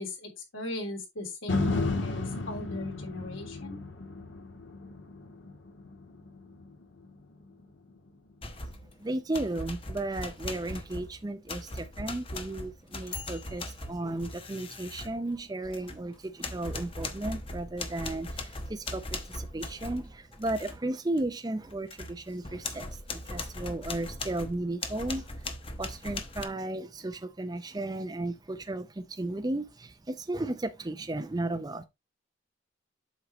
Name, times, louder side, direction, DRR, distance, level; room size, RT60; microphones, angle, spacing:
voice 1, 0.0-3.8, left 1 dB, 85° left, 3.1 m, -38 dB
sound 1, 1.5-9.6 10.1-10.2, left 3 dB, 65° left, 1.4 m, -35 dB
sound 2, 8.4-8.9 9.3-16.1 16.4-20.8 21.2-21.3 21.7-26.5, left 2 dB, 30° left, 1.0 m, -39 dB
voice 2, 9.0-31.8, right 2 dB, 20° right, 0.5 m, -34 dB
8.2 x 6.2 x 3.0 m
head